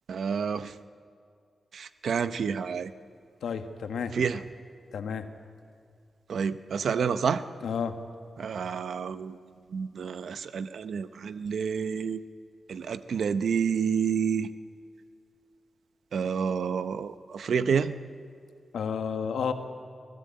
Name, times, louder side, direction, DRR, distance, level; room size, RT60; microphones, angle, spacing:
voice 1, 0.1-0.7 1.7-2.9 4.1-4.4 6.3-7.4 8.4-9.4 9.7-12.2 12.7-14.5 16.1-18.0, right 6 dB, 80° right, 13 dB, 0.8 m, -29 dB
voice 2, 3.4-4.1 4.9-5.3 7.6-8.0 18.7-19.5, left 6 dB, 90° left, 7 dB, 1.4 m, -31 dB
24.0 x 16.0 x 8.6 m, 2.3 s
cardioid pair, 60°, 0 cm